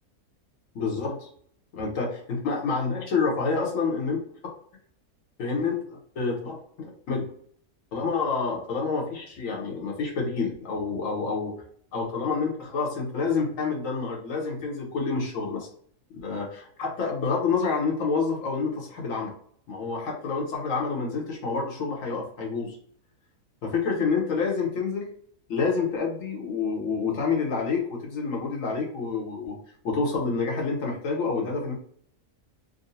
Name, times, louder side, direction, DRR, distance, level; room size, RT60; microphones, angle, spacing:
voice 1, 0.7-1.3 1.7-4.5 5.4-7.3 7.9-11.5 11.9-15.7 16.2-19.3 19.7-22.8 23.6-25.1 25.5-29.5 29.8-31.7, left 4 dB, 60° left, 0 dB, 1.3 m, -28 dB
3.8 x 2.3 x 2.7 m, 0.63 s
omnidirectional pair, 1.6 m